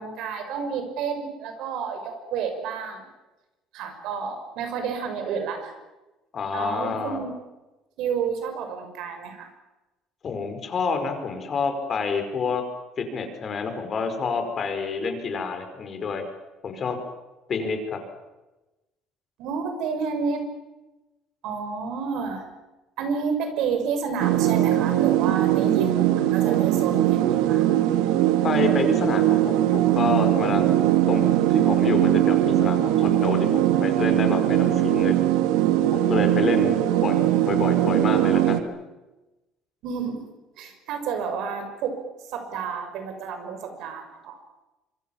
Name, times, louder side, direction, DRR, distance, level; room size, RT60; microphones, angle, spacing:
voice 1, 0.0-3.0 3.7-5.7 6.5-7.3 8.0-9.5 19.4-20.4 21.4-22.5 23.0-27.8 39.8-40.2 40.6-42.0 42.3-44.4, right 6 dB, 70° right, 6 dB, 6.1 m, -30 dB
voice 2, 6.3-7.2 10.2-12.6 13.0-16.2 16.6-17.0 17.5-18.0 28.4-30.6 31.1-35.3 35.9-38.6, left 5 dB, 35° left, 6 dB, 5.1 m, -28 dB
sound 1, 24.2-38.6, right 13 dB, 90° right, 1.9 m, -20 dB
26.0 x 24.5 x 7.4 m, 1.1 s
cardioid pair, 130°, 0 cm